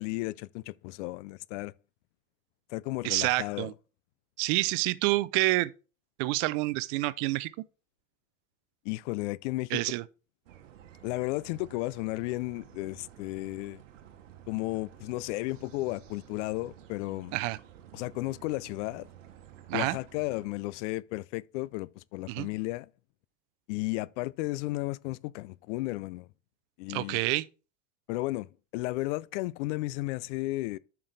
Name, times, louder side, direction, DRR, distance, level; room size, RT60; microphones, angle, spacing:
voice 1, 0.0-1.7 2.7-3.7 8.8-9.8 11.0-13.8 14.5-17.4 17.9-19.1 19.7-22.9 23.7-26.3 26.8-27.2 28.1-30.8, left 20 dB, 70° left, 0.5 m, -34 dB
voice 2, 3.0-3.7 4.4-5.7 6.2-7.5 9.7-10.0 17.3-17.6 19.7-20.0 22.3-22.5 26.9-27.4, right 20 dB, 65° right, 0.6 m, -28 dB
sound 1, 10.5-20.5, right 11 dB, 90° right, 1.1 m, -52 dB
8.7 x 6.0 x 3.3 m
hypercardioid pair, 90°, 37 cm